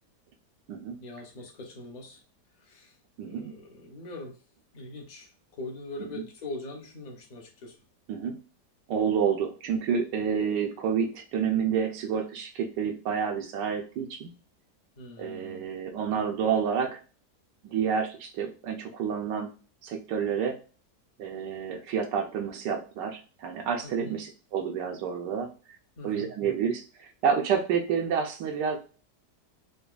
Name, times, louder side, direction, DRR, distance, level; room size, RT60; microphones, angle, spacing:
voice 1, 1.0-2.2 2.6-2.9 3.2-4.4 4.7-7.8 15.0-15.7 23.8-24.2 26.0-26.3, left 2 dB, 45° left, 1 dB, 0.5 m, -42 dB
voice 2, 3.2-3.5 6.1-6.2 8.1-8.4 8.9-14.3 15.2-17.0 17.6-19.5 19.8-20.6 21.2-25.5 26.0-28.8, right 7 dB, 90° right, 2 dB, 1.3 m, -29 dB
5.0 x 2.2 x 2.4 m, 0.36 s
omnidirectional pair, 1.8 m